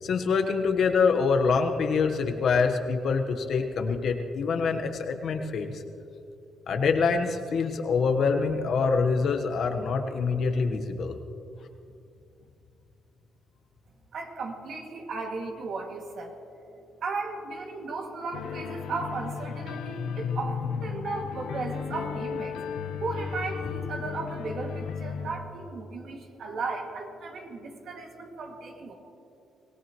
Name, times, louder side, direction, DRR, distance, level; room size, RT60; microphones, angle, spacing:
voice 1, 0.0-5.8 6.7-11.2, left 5 dB, 60° left, 5 dB, 1.2 m, -25 dB
voice 2, 14.1-16.4 17.0-22.6 23.0-29.0, right 3 dB, 65° right, 2 dB, 2.3 m, -35 dB
sound 1, 18.3-25.3, left 6 dB, 80° left, 1.0 m, -34 dB
25.0 x 17.5 x 3.1 m, 2.7 s
cardioid pair, 90°, 0 cm